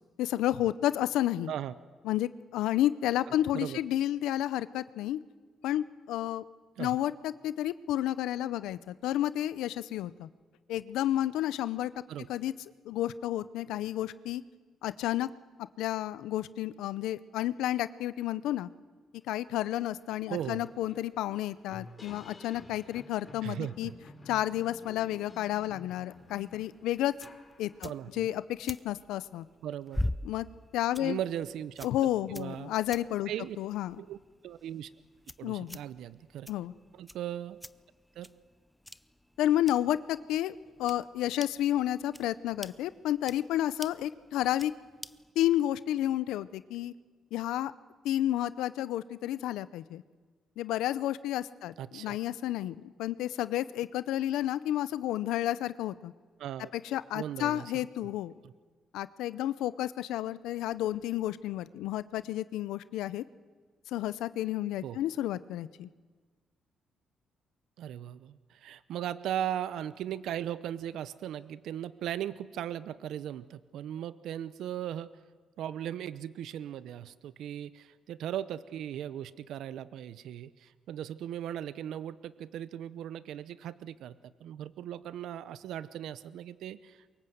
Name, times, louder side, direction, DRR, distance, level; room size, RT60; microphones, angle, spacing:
voice 1, 0.2-1.5 2.0-5.2 5.6-6.4 6.8-10.3 10.7-11.9 12.3-12.5 12.9-14.4 14.8-15.3 15.8-18.7 19.3-23.9 24.3-27.1 27.6-29.4 30.2-30.5 30.7-31.2 31.8-33.3 33.6-34.0 35.4-35.8 36.5-36.7 39.4-44.7 45.4-46.9 47.3-47.7 48.0-50.0 50.6-56.1 56.7-58.3 58.9-63.2 63.9-65.9, left 13 dB, 90° left, 16 dB, 0.6 m, -31 dB
sound 1, 19.6-19.7 20.0-28.1, left 2 dB, 25° left, 3.4 m, -52 dB
voice 2, 20.3-20.7 23.4-24.0 27.8-28.3 29.6-30.0 31.0-31.9 32.3-32.7 33.3-33.6 34.0-34.2 34.4-34.9 35.4-36.5 36.9-37.6 38.2-38.3 51.8-52.2 56.4-56.7 57.1-57.7 58.4-58.5 64.8-65.0 67.8-75.1 75.6-84.1 84.4-87.1, right 11 dB, 80° right, 16 dB, 0.7 m, -38 dB
sound 2, 26.2-45.3, left 1 dB, 5° left, 0.6 m, -45 dB
24.0 x 22.0 x 7.9 m, 1.4 s
cardioid pair, 90°, 0 cm